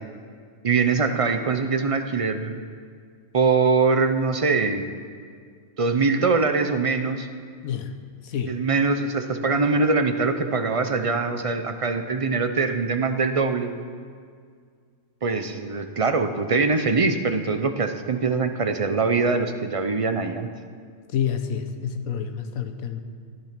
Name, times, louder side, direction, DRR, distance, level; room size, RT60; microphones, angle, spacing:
voice 1, 0.6-2.6 3.3-4.9 5.8-7.3 8.5-13.7 15.2-20.5, right 4 dB, 40° right, 8 dB, 0.5 m, -23 dB
voice 2, 7.6-8.0 8.2-8.6 21.1-23.0, left 8 dB, 85° left, 6 dB, 1.2 m, -28 dB
14.0 x 11.0 x 5.9 m, 2.1 s
omnidirectional pair, 1.4 m